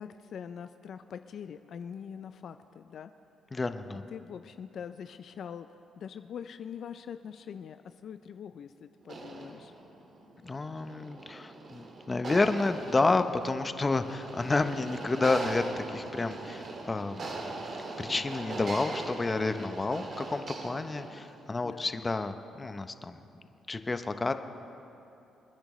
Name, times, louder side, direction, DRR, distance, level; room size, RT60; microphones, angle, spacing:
voice 1, 0.0-3.1 4.1-9.7 21.6-21.9, left 7 dB, 65° left, 10 dB, 0.4 m, -43 dB
voice 2, 3.5-4.1 10.4-23.2 23.7-24.3, left 3 dB, 25° left, 9 dB, 0.7 m, -30 dB
sound 1, 9.0-21.4, right 3 dB, 50° right, 1.9 m, -41 dB
28.0 x 10.0 x 3.1 m, 2.8 s
cardioid pair, 90°, 0 cm